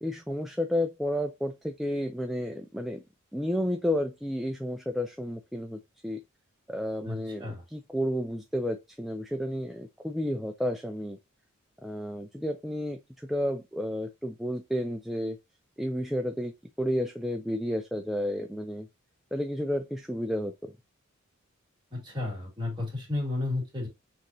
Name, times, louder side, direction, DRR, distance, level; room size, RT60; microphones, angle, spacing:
voice 1, 0.0-3.0 3.3-6.2 6.7-11.2 11.8-15.4 15.8-18.9 19.3-20.7, equal, ahead, 0.3 m, -31 dB
voice 2, 7.0-7.6 21.9-23.9, left 2 dB, 20° right, 2.0 m, -33 dB
6.1 x 3.0 x 2.7 m
head